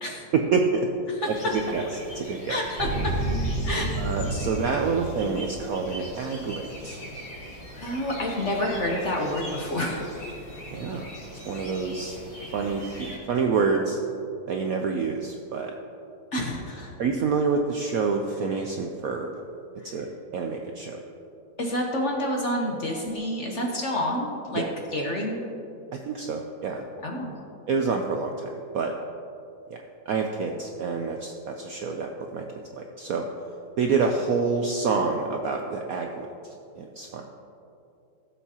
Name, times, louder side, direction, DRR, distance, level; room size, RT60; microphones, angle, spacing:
voice 1, 0.3-0.9 1.5-1.8 2.1-2.6 4.0-7.0 10.7-11.1 11.5-12.2 12.5-14.0 14.5-15.7 17.0-19.4 19.8-21.0 24.6-24.7 25.9-26.8 27.7-28.9 30.1-32.5 32.7-33.3 33.8-37.2, right 4 dB, 70° right, 3 dB, 0.8 m, -27 dB
sound 1, 1.2-13.2, equal, 85° left, 3.6 m, -41 dB
voice 2, 2.5-3.1 3.6-3.9 7.8-10.0 16.3-16.9 21.6-24.6 24.9-25.4 27.0-27.4, left 1 dB, 45° left, 0 dB, 1.0 m, -28 dB
sound 2, 2.8-5.7 5.9-6.0, right 2 dB, 50° right, 2.3 m, -29 dB
16.5 x 7.4 x 2.9 m, 2.7 s
omnidirectional pair, 2.1 m